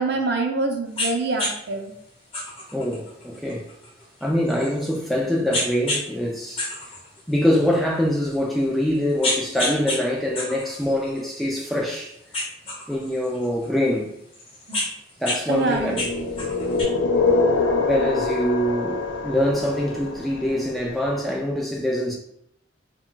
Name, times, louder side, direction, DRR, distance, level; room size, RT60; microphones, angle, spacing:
voice 1, 0.0-1.9 15.5-16.0, right 3 dB, 60° right, 0.5 m, -25 dB
sound 1, 1.0-1.1 1.4-1.5 2.3-5.0 5.5-6.1 6.4-7.8 8.3-8.4 8.9-10.0 10.4-11.9 12.3-13.7 14.3-15.4 15.7-16.8, left 1 dB, 30° left, 0.7 m, -29 dB
voice 2, 2.7-3.7 4.2-6.7 7.3-12.1 12.9-14.1 15.2-16.1 17.8-22.1, equal, ahead, 0.3 m, -24 dB
sound 2, 15.7-20.7, left 3 dB, 75° left, 0.4 m, -24 dB
2.3 x 2.2 x 3.8 m
head